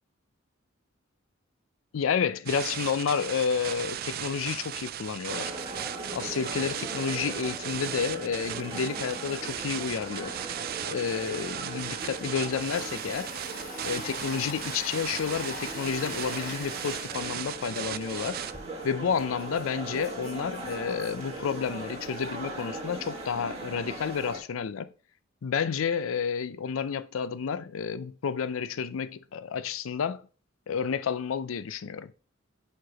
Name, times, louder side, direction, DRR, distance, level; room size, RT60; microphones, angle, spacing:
voice 1, 1.9-5.5 6.1-10.3 10.9-13.3 13.8-18.4 18.8-24.9 25.4-30.2 30.7-32.1, left 6 dB, 85° left, 0.4 m, -30 dB
sound 1, 2.5-18.5, right 11 dB, 50° right, 0.3 m, -37 dB
sound 2, 5.3-24.4, right 2 dB, 30° right, 1.4 m, -40 dB
Domestic sounds home sounds, 12.4-18.6, left 3 dB, 40° left, 1.2 m, -43 dB
4.7 x 4.5 x 5.0 m
head